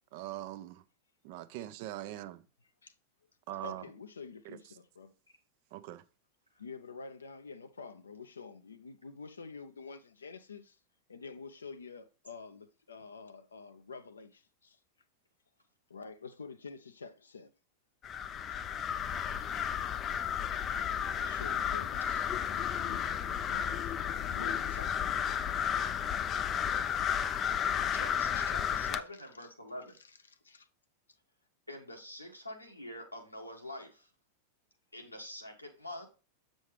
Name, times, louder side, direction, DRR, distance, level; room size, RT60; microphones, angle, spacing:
voice 1, 0.1-0.8 1.2-2.4 3.5-3.8 4.4-4.6 5.7-6.0, right 14 dB, 50° right, 0.7 m, -42 dB
voice 2, 3.6-5.1 6.6-10.8 11.1-14.8 15.9-17.5 21.2-25.0 28.9-29.5 30.4-30.7, left 4 dB, 75° left, 0.7 m, -48 dB
sound 1, 18.0-29.0, left 8 dB, 30° left, 0.5 m, -33 dB
voice 3, 27.9-30.0 31.7-34.1 34.9-36.1, left 1 dB, 90° left, 1.7 m, -45 dB
8.2 x 6.3 x 3.3 m
figure-of-eight pair, 90°, 0 cm